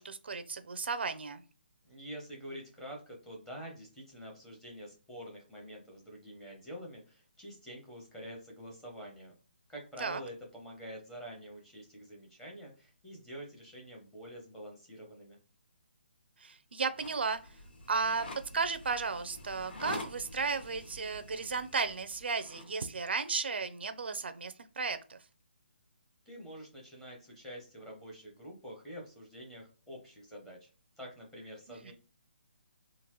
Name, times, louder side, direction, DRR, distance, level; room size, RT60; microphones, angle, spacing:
voice 1, 0.0-1.4 10.0-10.2 16.4-17.4 17.9-18.3 18.5-25.2 31.7-31.9, right 4 dB, 65° right, 11 dB, 0.5 m, -34 dB
voice 2, 1.8-9.3 9.7-15.4 26.3-30.7 31.0-31.9, equal, 5° left, -2 dB, 0.7 m, -47 dB
sound 1, 16.9-22.7, left 2 dB, 65° left, 1.9 m, -47 dB
3.8 x 2.5 x 3.0 m, 0.37 s
hypercardioid pair, 175°, 6 cm